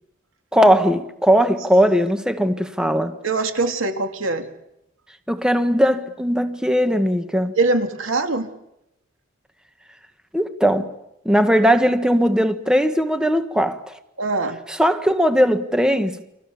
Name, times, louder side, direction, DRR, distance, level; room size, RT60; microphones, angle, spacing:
voice 1, 0.5-3.1 5.3-7.5 10.3-10.9 11.2-13.9 14.7-16.2, equal, 5° right, 1.6 m, -18 dB
voice 2, 3.2-4.5 7.6-8.5 14.2-14.6, right 3 dB, 85° right, 2.6 m, -22 dB
30.0 x 24.0 x 7.2 m
head